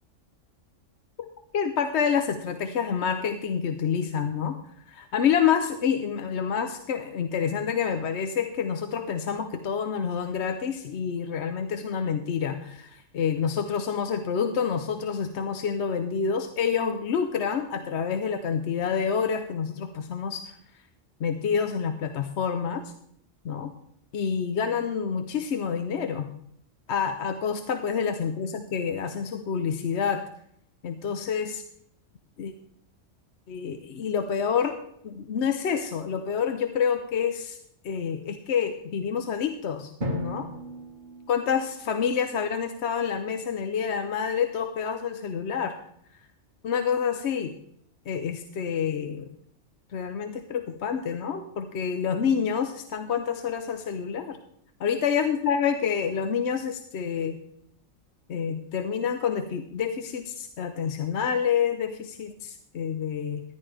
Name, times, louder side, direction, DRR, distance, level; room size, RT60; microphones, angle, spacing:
voice 1, 1.5-4.6 4.9-20.5 21.2-22.8 23.4-23.7 24.1-26.3 26.9-30.2 30.8-31.6 32.4-32.5 33.5-34.8 35.0-37.6 37.8-39.9 40.2-40.5 41.3-45.8 46.6-47.5 48.1-49.3 49.9-54.4 54.8-57.4 58.3-63.4, left 7 dB, 65° left, 8 dB, 1.0 m, -28 dB
Drum, 40.0-42.5, left 1 dB, 35° right, 1.8 m, -35 dB
14.0 x 10.5 x 3.4 m, 0.69 s
omnidirectional pair, 1.3 m